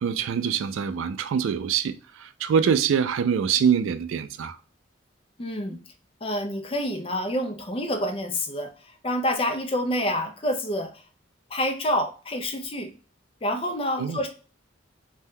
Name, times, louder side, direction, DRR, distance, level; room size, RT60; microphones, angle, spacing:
voice 1, 0.0-4.6 14.0-14.2, right 7 dB, 75° right, 0.3 m, -24 dB
voice 2, 5.4-5.8 6.2-11.0 11.5-12.9 13.4-14.3, left 1 dB, 25° left, 0.4 m, -28 dB
2.7 x 2.2 x 3.5 m
head